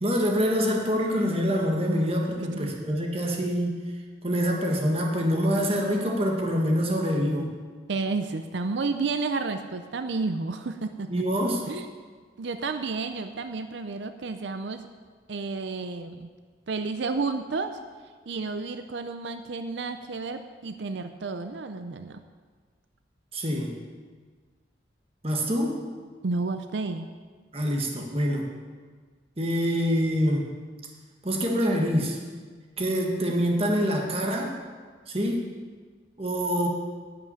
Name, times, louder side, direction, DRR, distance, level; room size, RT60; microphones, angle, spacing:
voice 1, 0.0-3.8 4.2-7.5 11.1-11.6 23.3-23.7 25.2-25.8 27.5-28.5 29.4-30.5 31.2-32.2 32.8-34.6 35.1-35.4 36.2-36.7, equal, 30° right, 0 dB, 1.5 m, -25 dB
voice 2, 2.4-2.8 7.9-11.3 11.7-11.9 12.4-14.9 15.3-16.3 16.7-17.8 18.3-22.2 26.2-27.1, right 3 dB, 70° right, 8 dB, 0.5 m, -31 dB
11.0 x 5.9 x 8.7 m, 1.5 s
head